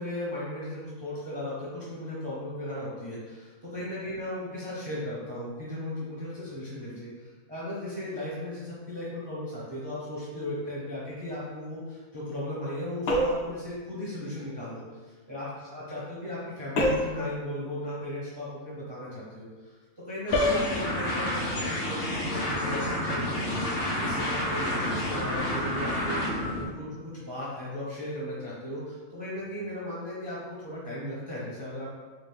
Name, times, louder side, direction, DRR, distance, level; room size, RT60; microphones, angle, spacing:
voice 1, 0.0-19.8 20.1-23.7 24.0-31.9, left 1 dB, 25° right, -8 dB, 0.6 m, -36 dB
sound 1, 13.1-13.6 16.8-17.2 20.3-20.7, left 1 dB, 85° left, 1.1 m, -25 dB
sound 2, 20.3-26.7, left 1 dB, 40° left, 0.5 m, -30 dB
3.6 x 2.5 x 3.3 m, 1.3 s
omnidirectional pair, 1.5 m